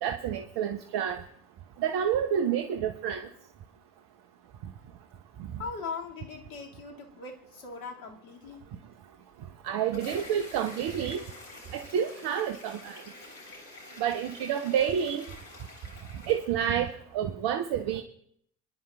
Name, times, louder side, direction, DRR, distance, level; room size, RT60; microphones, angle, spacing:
voice 1, 0.0-1.2 1.8-3.2 9.6-11.2 11.7-13.0 14.0-15.2 16.3-16.9 17.1-18.0, right 9 dB, 55° right, 5 dB, 1.0 m, -29 dB
voice 2, 5.6-8.7, left 4 dB, 65° left, 1 dB, 2.3 m, -40 dB
sound 1, 9.5-16.9, left 2 dB, 85° left, 3.8 m, -47 dB
27.5 x 11.0 x 2.3 m, 0.71 s
hypercardioid pair, 60°, 48 cm